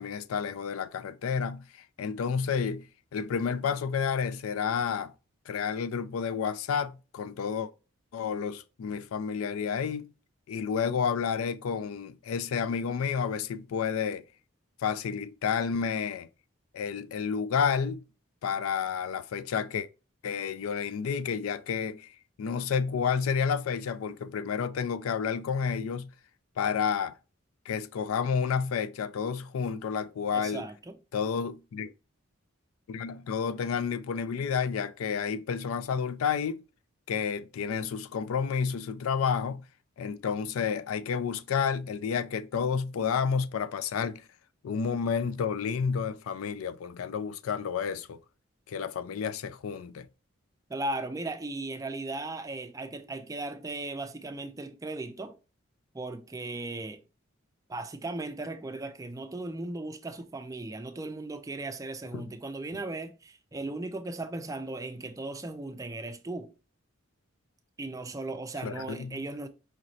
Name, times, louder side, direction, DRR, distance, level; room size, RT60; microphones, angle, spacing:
voice 1, 0.0-1.6 2.0-2.8 3.1-5.1 5.5-7.7 8.1-10.1 10.5-14.2 14.8-16.3 16.7-18.0 18.4-19.9 20.2-22.1 22.4-26.1 26.6-27.2 27.7-30.6 31.1-31.9 32.9-36.6 37.1-39.6 40.0-44.2 44.6-48.2 48.7-50.1 62.1-62.3 68.6-69.2, left 6 dB, 90° left, 0.4 m, -30 dB
voice 2, 30.3-31.0 50.7-55.4 55.9-57.0 57.7-66.5 67.8-69.5, right 2 dB, 15° right, 0.4 m, -37 dB
5.0 x 3.0 x 2.7 m
head